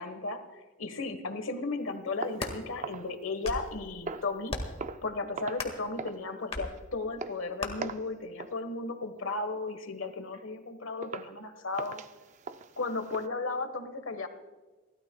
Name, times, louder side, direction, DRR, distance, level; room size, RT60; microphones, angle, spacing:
voice 1, 0.0-4.6 5.0-12.0 12.8-14.3, left 3 dB, 85° left, 10 dB, 1.3 m, -35 dB
sound 1, 2.1-2.6 3.2-3.7 4.5-4.8 5.5-5.9 6.5-6.7 7.6-7.7, left 2 dB, 30° left, 1.7 m, -36 dB
sound 2, 2.2-3.7 4.0-4.4 4.8-5.1 5.4-5.7 6.0-6.2 6.6-6.8 7.2-7.4 7.8-8.1 8.4-8.6 9.0-9.3 9.7-9.8 10.3-10.4 11.0-11.3 11.7-13.3, right 4 dB, 35° right, 0.5 m, -41 dB
28.5 x 13.0 x 2.3 m, 1.3 s
head